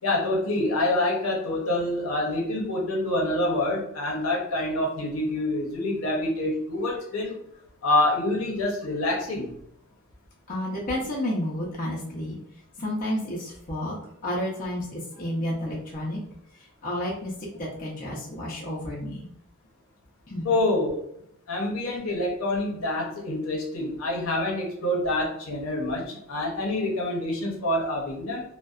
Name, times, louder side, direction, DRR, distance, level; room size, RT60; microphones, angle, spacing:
voice 1, 0.0-7.4 7.8-9.5 20.4-21.0 21.5-28.4, left 1 dB, 70° left, -2 dB, 0.7 m, -26 dB
voice 2, 10.5-12.4 12.8-13.9 14.2-16.2 16.6-19.3 20.3-20.5, left 1 dB, 40° left, -4 dB, 0.6 m, -31 dB
2.5 x 2.1 x 2.3 m, 0.72 s
head